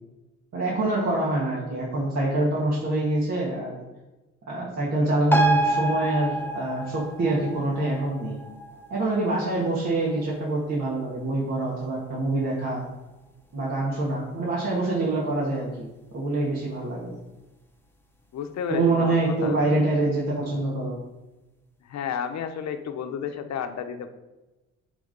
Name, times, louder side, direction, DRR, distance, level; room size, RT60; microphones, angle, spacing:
voice 1, 0.5-3.8 4.5-8.4 8.9-12.8 13.5-15.9 16.1-17.1 18.7-21.0, right 2 dB, 60° right, -6 dB, 2.0 m, -25 dB
sound 1, 5.3-12.3 12.6-12.7, right 2 dB, 5° left, 1.0 m, -29 dB
voice 2, 18.3-19.6 21.9-24.1, left 7 dB, 65° left, 8 dB, 0.9 m, -32 dB
8.6 x 3.6 x 5.2 m, 1.1 s
cardioid pair, 90°, 30 cm